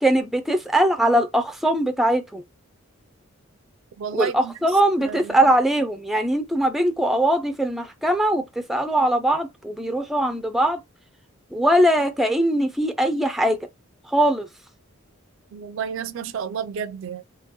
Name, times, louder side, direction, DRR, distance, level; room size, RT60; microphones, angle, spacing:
voice 1, 0.0-2.4 4.1-10.8 11.5-13.6 14.1-14.5, right 1 dB, ahead, 0.4 m, -21 dB
voice 2, 4.0-4.5 5.0-5.5 15.5-17.2, right 7 dB, 65° right, 0.3 m, -31 dB
3.6 x 2.9 x 2.8 m
head